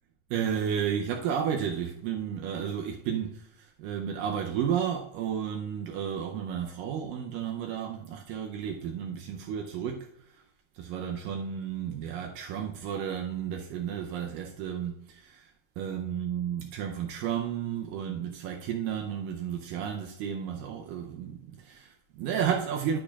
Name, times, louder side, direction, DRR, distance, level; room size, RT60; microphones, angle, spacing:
voice 1, 0.3-10.1 10.8-15.5 15.8-23.0, right 8 dB, 80° right, 2.3 m, -32 dB
10.0 x 8.6 x 2.3 m
omnidirectional pair, 4.0 m